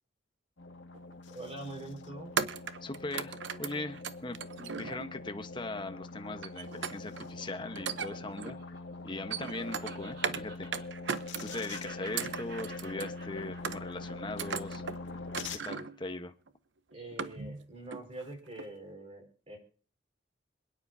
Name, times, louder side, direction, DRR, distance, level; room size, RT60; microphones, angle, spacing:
sound 1, 0.6-15.6, left 3 dB, 85° left, 2.1 m, -44 dB
sound 2, 0.9-1.1 2.4-5.3 6.4-7.3 7.7-8.6 9.0-10.4 10.7-11.7 12.1-13.2 13.6-14.1 14.4-15.0 15.3-16.0 16.5-16.6 16.9-17.6 17.9-18.2 18.6-18.7, right 6 dB, 80° right, 0.8 m, -37 dB
voice 1, 1.3-2.3 16.9-19.6, right 1 dB, 35° right, 1 dB, 5.3 m, -44 dB
voice 2, 2.8-8.6 9.0-10.7 11.4-14.8 15.5-16.3, left 2 dB, 25° left, 7 dB, 1.1 m, -40 dB
Laughter, 7.1-11.2 11.5-15.9, right 2 dB, 65° right, 7.4 m, -51 dB
27.0 x 9.7 x 2.8 m, 0.40 s
head